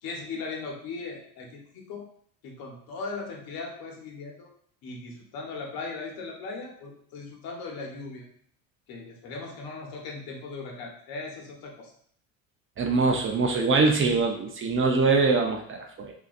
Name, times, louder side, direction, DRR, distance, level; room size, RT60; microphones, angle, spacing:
voice 1, 0.0-2.0 2.4-4.5 4.8-8.2 8.9-11.9, left 3 dB, 60° left, 0 dB, 1.1 m, -38 dB
voice 2, 12.8-16.1, right 4 dB, 30° right, 3 dB, 0.5 m, -23 dB
3.6 x 2.7 x 2.5 m, 0.63 s
hypercardioid pair, 80°, 40 cm